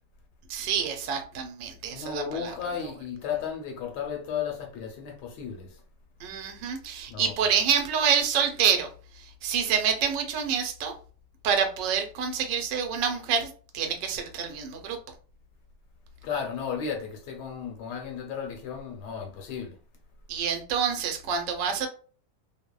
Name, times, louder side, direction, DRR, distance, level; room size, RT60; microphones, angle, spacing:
voice 1, 0.5-2.5 6.2-8.9 9.1-11.0 11.4-15.0 20.3-21.9, right 7 dB, 80° right, 1.2 m, -27 dB
voice 2, 1.9-5.8 7.1-7.5 16.2-19.8, left 7 dB, 75° left, 1.2 m, -34 dB
2.9 x 2.0 x 2.2 m
omnidirectional pair, 1.9 m